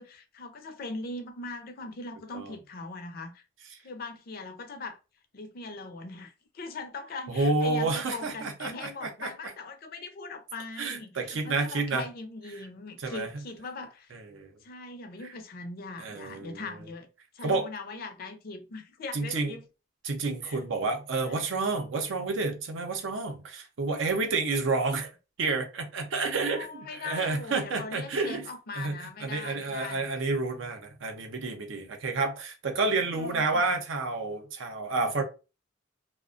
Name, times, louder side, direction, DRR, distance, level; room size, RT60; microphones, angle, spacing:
voice 1, 0.0-3.4 3.8-5.0 5.3-14.2 14.6-17.1 17.3-19.6 20.4-20.6 26.4-30.0 33.1-33.8 34.9-35.2, left 3 dB, 50° left, 0.4 m, -40 dB
voice 2, 7.3-9.3 10.8-12.1 13.0-13.3 14.1-14.5 16.0-16.7 17.4-17.7 19.1-19.6 20.0-25.1 25.4-28.5 28.7-35.2, right 3 dB, 85° right, 0.6 m, -30 dB
2.4 x 2.1 x 2.4 m
head